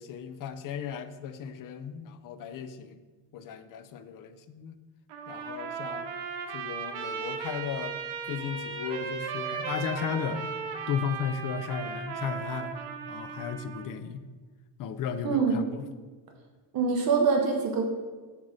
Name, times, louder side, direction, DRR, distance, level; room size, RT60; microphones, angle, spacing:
voice 1, 0.0-3.0 3.3-4.8 5.3-6.1 6.5-8.0 8.3-10.4 10.9-12.8 13.1-14.3 14.8-15.9, left 7 dB, 45° left, 11 dB, 0.5 m, -35 dB
Trumpet, 5.1-13.9, right 6 dB, 70° right, 1.0 m, -36 dB
voice 2, 15.2-15.6 16.7-17.8, right 5 dB, 45° right, 2 dB, 1.0 m, -24 dB
8.0 x 3.7 x 6.3 m, 1.4 s
cardioid pair, 175°, 49 cm